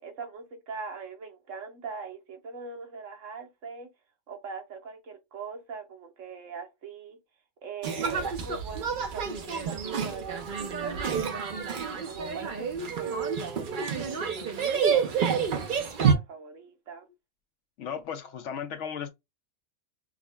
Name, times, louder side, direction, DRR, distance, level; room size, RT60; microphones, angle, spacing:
voice 1, 0.0-3.9 4.3-7.2 7.6-17.1, right 5 dB, 75° right, 1.3 m, -42 dB
sound 1, 7.8-16.1, right 6 dB, 50° right, 0.7 m, -29 dB
voice 2, 17.8-19.1, left 8 dB, 75° left, 0.9 m, -35 dB
6.0 x 2.1 x 2.2 m
omnidirectional pair, 1.3 m